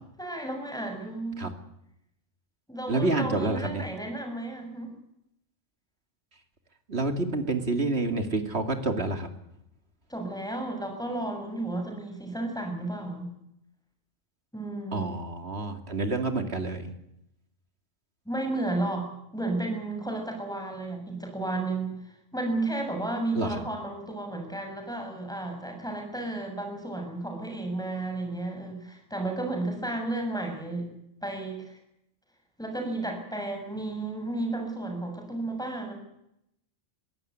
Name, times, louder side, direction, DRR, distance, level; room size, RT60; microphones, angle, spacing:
voice 1, 0.2-1.5 2.7-4.9 10.1-13.3 14.5-15.1 18.3-30.9 31.2-31.8 32.6-35.9, right 2 dB, 5° left, 3 dB, 7.0 m, -33 dB
voice 2, 2.9-3.8 6.9-9.3 14.9-16.9 23.3-23.6, right 2 dB, 55° right, 7 dB, 2.8 m, -28 dB
22.5 x 16.5 x 9.4 m, 0.80 s
omnidirectional pair, 1.3 m